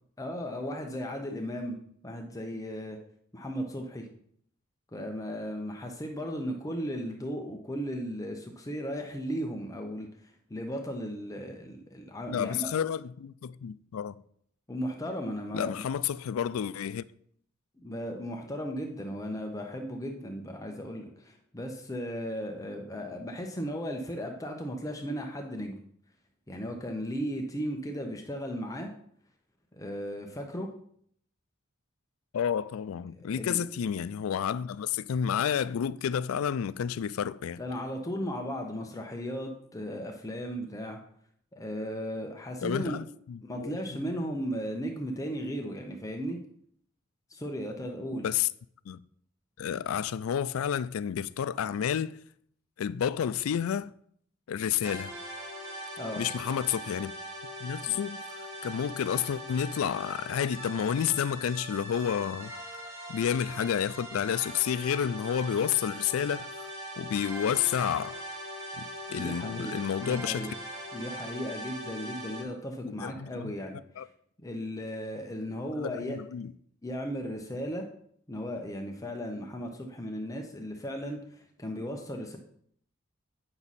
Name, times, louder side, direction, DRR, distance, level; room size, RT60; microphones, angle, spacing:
voice 1, 0.2-1.8 2.0-3.0 3.3-4.1 4.9-12.7 14.7-15.8 17.8-25.8 26.5-28.9 29.7-30.7 33.2-33.6 37.6-41.0 41.5-43.0 43.4-46.4 47.3-48.3 56.0-56.2 67.0-67.1 69.1-70.5 70.9-74.1 74.4-76.2 76.8-77.9 78.3-82.4, equal, 15° left, 0.7 m, -36 dB
voice 2, 12.3-14.2 15.5-17.0 32.3-37.6 42.6-43.8 44.0-44.1 48.2-48.5 48.9-49.0 49.6-52.2 52.8-53.9 54.5-55.1 56.2-57.1 57.6-58.2 58.6-62.5 63.1-66.5 67.0-68.2 68.8-70.5 72.8-73.5 74.0-74.1 75.8-76.5, left 8 dB, 90° left, 0.4 m, -30 dB
sound 1, 54.8-72.4, equal, 80° right, 1.8 m, -41 dB
8.6 x 6.1 x 4.1 m
head